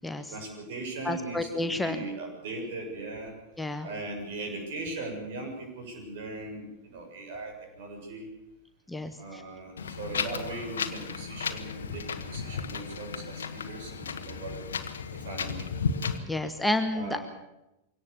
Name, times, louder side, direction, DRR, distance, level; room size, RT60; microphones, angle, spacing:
voice 1, 0.3-3.3 3.8-8.3 9.2-14.6 15.2-15.7 16.9-17.2, right 2 dB, 55° right, 3 dB, 7.0 m, -39 dB
voice 2, 1.0-2.0 3.6-3.9 8.9-9.4 16.3-17.2, left 1 dB, 5° left, 7 dB, 1.2 m, -30 dB
Wind, 9.8-16.2, left 6 dB, 65° left, 1.4 m, -34 dB
23.5 x 18.0 x 7.0 m, 0.92 s
figure-of-eight pair, 90°, 0 cm